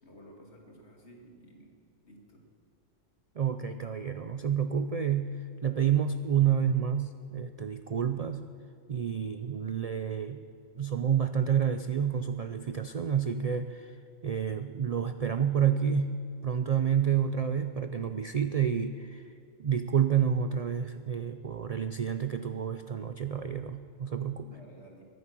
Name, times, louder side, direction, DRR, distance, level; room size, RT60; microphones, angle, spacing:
voice 1, 0.0-1.7 2.0-2.4 24.4-25.1, equal, 55° left, 0 dB, 2.6 m, -53 dB
voice 2, 3.4-5.4 5.6-8.5 8.9-10.4 10.8-14.0 14.2-19.2 19.6-24.5, right 8 dB, 85° right, 9 dB, 0.3 m, -29 dB
22.0 x 9.5 x 6.1 m, 2.4 s
omnidirectional pair, 1.3 m